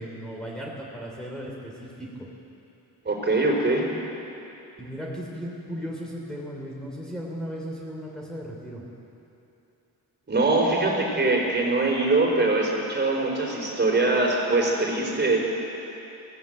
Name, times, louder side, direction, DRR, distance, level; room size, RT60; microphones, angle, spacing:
voice 1, 0.0-2.1 4.8-8.8, equal, ahead, -4 dB, 3.4 m, -36 dB
voice 2, 3.0-3.8 10.3-15.4, right 2 dB, 25° right, -1 dB, 4.5 m, -23 dB
24.0 x 17.5 x 8.0 m, 2.9 s
wide cardioid pair, 125°, 39 cm